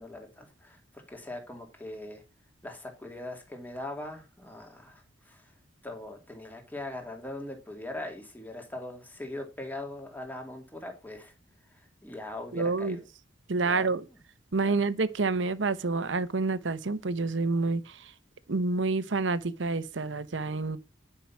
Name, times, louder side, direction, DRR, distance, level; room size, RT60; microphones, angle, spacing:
voice 1, 0.0-2.2 2.6-5.4 5.8-11.3 11.8-13.1 13.6-13.9 14.6-14.8, left 1 dB, 10° left, 2.4 m, -41 dB
voice 2, 12.5-13.0 13.5-14.0 14.5-18.0 18.5-20.8, right 3 dB, 80° right, 0.9 m, -28 dB
10.5 x 5.7 x 5.9 m
head